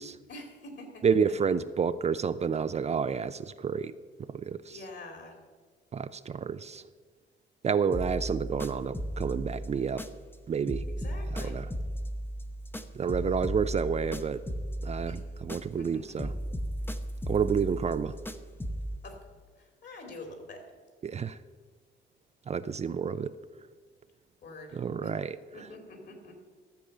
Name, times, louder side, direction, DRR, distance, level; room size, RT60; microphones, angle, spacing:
voice 1, 0.3-1.3 4.7-5.4 10.9-11.7 15.1-15.2 15.8-16.3 19.0-19.2 19.6-20.7 24.4-25.2 25.5-26.4, left 2 dB, 60° left, 4 dB, 2.8 m, -46 dB
voice 2, 1.0-3.9 4.3-4.8 5.9-6.8 7.6-10.0 10.5-10.8 11.3-11.7 12.9-14.4 14.8-16.3 17.3-18.2 21.0-21.4 22.5-23.3 24.7-25.3, right 6 dB, 35° right, 13 dB, 0.4 m, -29 dB
sound 1, 7.9-10.4 10.7-15.9 16.2-19.0, equal, 10° left, 0.8 m, -36 dB
13.5 x 7.0 x 6.6 m, 1.5 s
cardioid pair, 90°, 20 cm